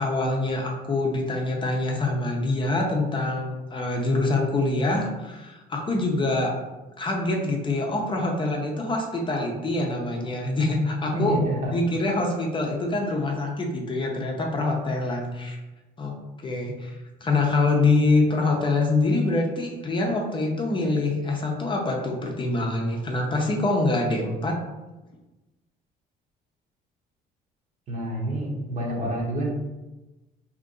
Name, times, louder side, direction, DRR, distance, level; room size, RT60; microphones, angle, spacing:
voice 1, 0.0-6.6 7.0-11.4 11.7-15.6 16.0-16.1 16.4-24.6, left 2 dB, 30° left, 0 dB, 0.6 m, -25 dB
voice 2, 11.1-11.7 27.9-29.5, right 1 dB, 45° right, -1 dB, 0.9 m, -27 dB
2.8 x 2.5 x 3.7 m, 1.1 s
cardioid pair, 110°, 17 cm